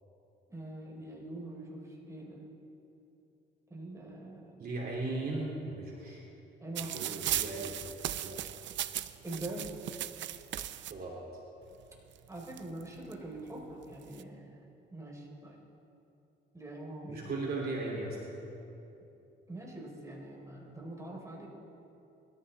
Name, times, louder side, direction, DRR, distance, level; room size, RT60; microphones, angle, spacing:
voice 1, 0.5-2.5 3.7-4.7 6.6-7.0 9.2-9.7 12.3-14.6 14.9-15.6 16.5-17.3 19.5-21.5, right 1 dB, 15° right, -2 dB, 4.1 m, -44 dB
voice 2, 4.6-6.2 6.8-7.8 8.2-8.4 10.9-11.2 17.1-18.2, right 2 dB, 50° right, -3 dB, 2.9 m, -37 dB
sound 1, 6.8-10.9 11.8-11.9 12.2-13.1 13.8-14.2, right 12 dB, 70° right, 0.6 m, -37 dB
23.5 x 14.0 x 3.5 m, 2.8 s
cardioid pair, 90°, 20 cm